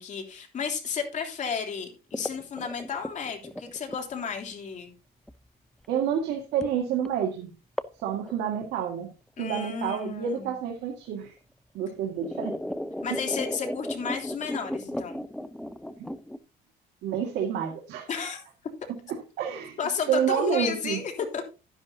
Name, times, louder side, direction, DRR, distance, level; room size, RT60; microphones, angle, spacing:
voice 1, 0.0-4.9 9.4-10.5 13.0-15.2 18.1-18.4 19.8-21.0 21.3-21.4, left 6 dB, 45° left, 2 dB, 3.2 m, -33 dB
sound 1, 2.1-4.5 5.3-5.4 6.6-6.8 7.0-7.1 7.8-8.0 8.3-9.1 10.2-10.3 11.3-11.4 11.8-16.4, left 1 dB, 5° left, 0.6 m, -35 dB
voice 2, 5.9-7.5 8.0-9.1 9.4-11.3 11.7-12.6 13.1-13.2 16.0-16.1 17.0-18.1 18.9-19.8 20.1-21.0, right 8 dB, 80° right, 1 dB, 2.1 m, -29 dB
12.0 x 10.5 x 2.8 m, 0.32 s
cardioid pair, 110°, 17 cm